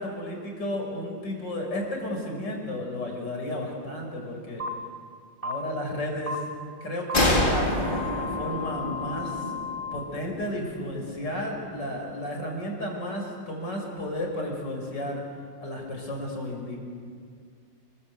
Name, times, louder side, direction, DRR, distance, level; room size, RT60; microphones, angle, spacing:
voice 1, 0.0-4.6 5.4-6.4 6.8-7.8 8.1-9.5 9.9-15.2 15.6-16.8, left 1 dB, 70° left, 1 dB, 6.4 m, -33 dB
sound 1, 4.6-4.7 5.4-5.5 6.3-6.4 7.1-7.2 7.8-10.0, left 4 dB, 30° right, 2.1 m, -34 dB
sound 2, 7.1-10.7, left 1 dB, 25° left, 3.8 m, -27 dB
30.0 x 22.5 x 8.2 m, 2.1 s
omnidirectional pair, 2.0 m